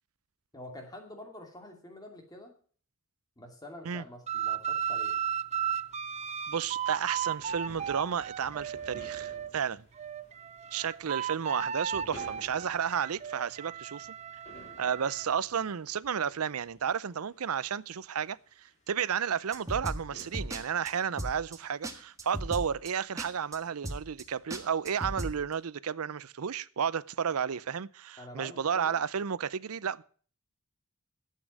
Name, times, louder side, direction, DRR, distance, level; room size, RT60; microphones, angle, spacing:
voice 1, 0.5-2.5 3.4-5.2 28.2-29.0, left 1 dB, 20° left, 2.5 m, -47 dB
sound 1, 4.3-9.5 9.9-15.2, right 8 dB, 30° right, 0.5 m, -35 dB
sound 2, 5.8-25.2, equal, 35° left, 3.4 m, -56 dB
voice 2, 6.5-9.8 10.7-14.1 14.8-30.0, right 7 dB, 80° right, 0.6 m, -32 dB
sound 3, 19.5-20.6 20.9-21.0 21.2-21.6 21.8-21.9 22.2-22.9 23.2-23.3 23.5-23.6 23.8-24.2 24.5-25.3, right 1 dB, 15° right, 1.5 m, -36 dB
12.5 x 8.5 x 6.2 m
head